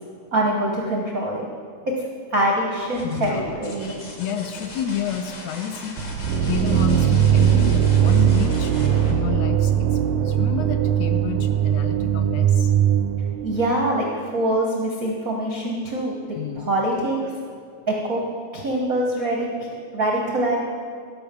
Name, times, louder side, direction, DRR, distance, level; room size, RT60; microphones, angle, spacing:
voice 1, 0.3-1.4 1.9-2.0 2.3-3.9 13.4-16.2 16.6-17.2 17.9-18.2 18.5-19.5 19.9-20.6, right 1 dB, 70° right, -2 dB, 0.8 m, -24 dB
sound 1, 2.8-10.4 12.1-12.7, left 2 dB, 50° left, 1.5 m, -38 dB
voice 2, 3.0-3.5 4.2-6.0 6.4-8.7 9.1-12.7 16.3-16.7, left 8 dB, 75° left, 7 dB, 1.7 m, -30 dB
sound 2, 6.0-13.8, right 9 dB, 90° right, 2.0 m, -20 dB
12.5 x 5.7 x 6.6 m, 2.2 s
omnidirectional pair, 3.3 m